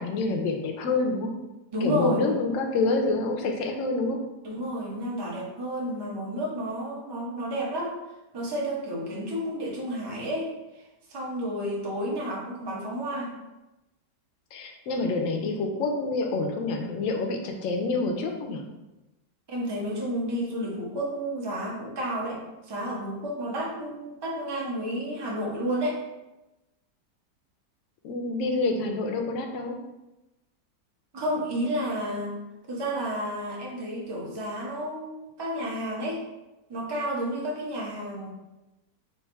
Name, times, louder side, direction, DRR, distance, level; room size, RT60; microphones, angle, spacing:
voice 1, 0.0-1.3 1.8-4.2 14.5-18.6 28.0-29.8, left 3 dB, 65° left, 3 dB, 0.8 m, -27 dB
voice 2, 1.7-2.3 4.4-8.0 8.3-10.8 11.1-13.3 19.5-26.0 31.1-32.4 32.7-36.2 36.7-38.3, equal, 25° right, -4 dB, 0.5 m, -31 dB
3.5 x 2.5 x 4.4 m, 1.0 s
omnidirectional pair, 1.8 m